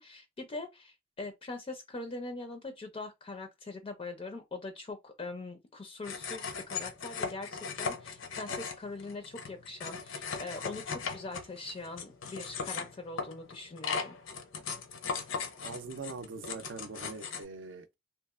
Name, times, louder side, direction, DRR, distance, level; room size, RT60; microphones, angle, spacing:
voice 1, 0.0-14.2, left 3 dB, 30° left, 0.4 m, -42 dB
sound 1, 6.0-17.4, left 5 dB, 75° left, 0.6 m, -38 dB
voice 2, 15.6-18.0, right 4 dB, 70° right, 0.5 m, -42 dB
2.8 x 2.3 x 2.3 m
head